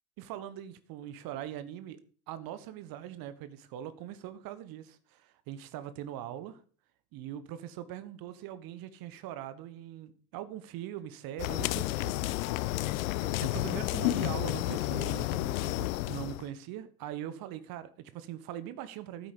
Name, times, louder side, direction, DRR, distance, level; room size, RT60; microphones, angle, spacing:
voice 1, 0.2-2.0 2.3-6.6 7.1-12.7 13.2-19.3, right 11 dB, 50° right, 1.3 m, -42 dB
sound 1, 11.4-16.5, left 17 dB, 65° left, 0.6 m, -31 dB
12.0 x 9.2 x 5.3 m
figure-of-eight pair, 60°, 45 cm